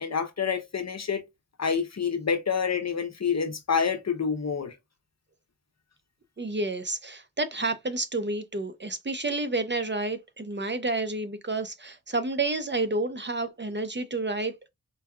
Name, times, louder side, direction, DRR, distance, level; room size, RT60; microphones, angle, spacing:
voice 1, 0.0-1.2 1.6-4.7, left 6 dB, 50° left, 0.8 m, -27 dB
voice 2, 6.4-14.7, right 2 dB, 30° right, 0.6 m, -30 dB
4.5 x 2.7 x 2.3 m
wide cardioid pair, 75°, 35 cm